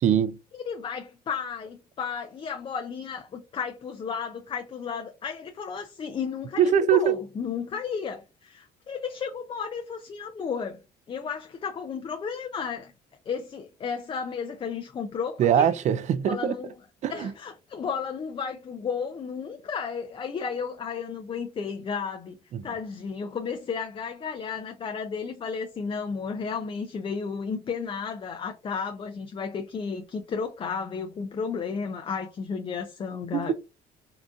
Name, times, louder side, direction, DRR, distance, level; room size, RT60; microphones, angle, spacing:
voice 1, 0.0-0.4 6.6-7.2 15.4-16.5 17.0-17.3 22.5-22.7 33.3-33.5, right 9 dB, 45° right, 0.4 m, -22 dB
voice 2, 0.5-10.8 11.1-12.9 13.3-15.7 16.2-16.7 17.1-22.4 22.6-33.5, left 6 dB, 30° left, 0.4 m, -33 dB
3.8 x 2.5 x 2.3 m
cardioid pair, 110°, 17 cm